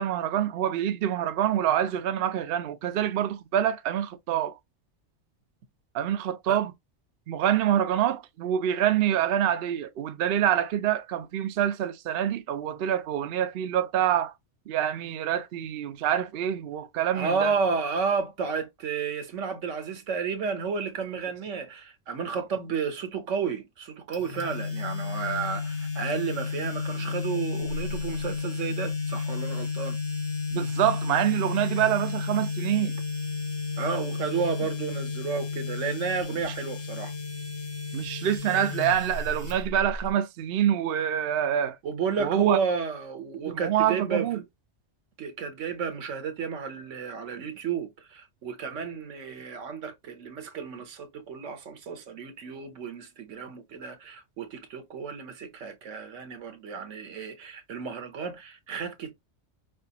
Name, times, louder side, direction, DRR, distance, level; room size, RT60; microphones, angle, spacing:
voice 1, 0.0-4.5 5.9-6.7 7.3-14.3 14.7-17.5 30.5-32.9 36.3-36.4 37.9-41.8 42.2-42.6 43.5-44.4, right 10 dB, 60° right, 0.7 m, -26 dB
voice 2, 17.1-30.0 33.8-37.1 41.8-44.4 45.2-59.1, right 5 dB, 80° right, 1.2 m, -32 dB
sound 1, 24.1-40.1, left 4 dB, 65° left, 1.7 m, -32 dB
5.3 x 2.5 x 2.8 m
omnidirectional pair, 1.3 m